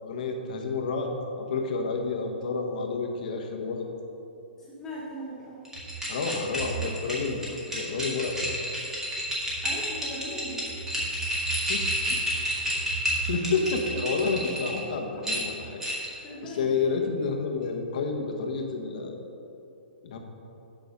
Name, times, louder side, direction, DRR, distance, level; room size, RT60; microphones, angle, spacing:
voice 1, 0.0-1.1 1.4-3.9 6.1-7.4 7.7-8.5 11.6-12.2 12.7-16.1 16.4-19.2 20.0-20.2, left 4 dB, 50° left, 2 dB, 1.2 m, -30 dB
voice 2, 4.6-5.6 9.6-10.6 16.2-17.1, equal, 10° left, -7 dB, 1.2 m, -39 dB
sound 1, 5.7-14.8 15.2-16.2, equal, 10° right, 1.7 m, -30 dB
9.6 x 6.0 x 5.3 m, 2.8 s
hypercardioid pair, 155°, 5 cm